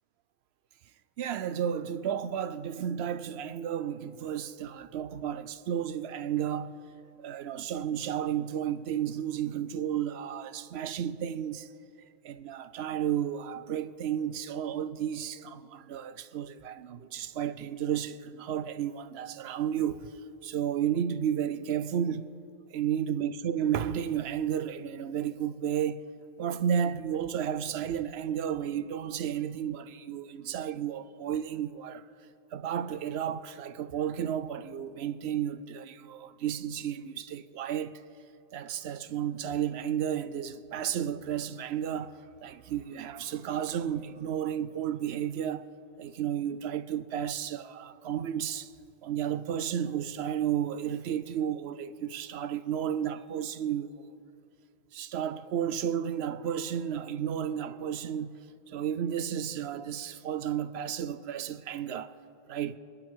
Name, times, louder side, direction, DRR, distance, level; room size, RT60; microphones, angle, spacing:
voice 1, 1.2-6.8 7.2-11.7 12.2-20.1 20.4-22.3 22.7-26.0 26.4-32.0 32.5-38.0 38.5-45.7 46.0-48.7 49.0-54.1 54.9-62.1 62.5-62.7, right 9 dB, 70° right, 0.8 m, -32 dB
27.5 x 10.5 x 3.7 m
omnidirectional pair, 1.1 m